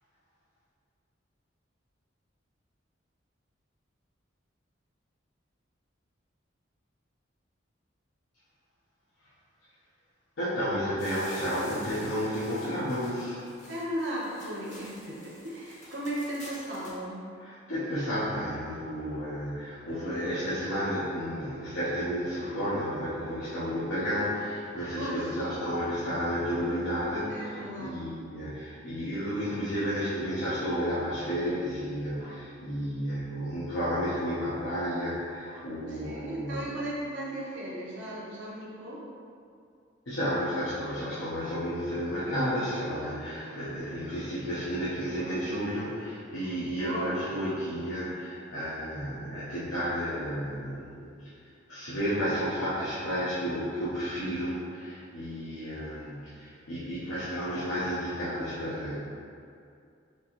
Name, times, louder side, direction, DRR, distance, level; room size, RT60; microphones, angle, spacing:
voice 1, 10.4-13.5 17.4-36.7 40.1-51.1 51.7-59.0, equal, 85° left, -12 dB, 0.9 m, -32 dB
sound 1, 11.0-17.0, left 2 dB, 40° left, 0.8 m, -49 dB
voice 2, 13.7-17.2 25.0-25.3 27.3-28.0 35.9-39.0 46.7-47.5, right 1 dB, 70° right, -5 dB, 0.7 m, -36 dB
4.5 x 3.4 x 3.0 m, 2.4 s
head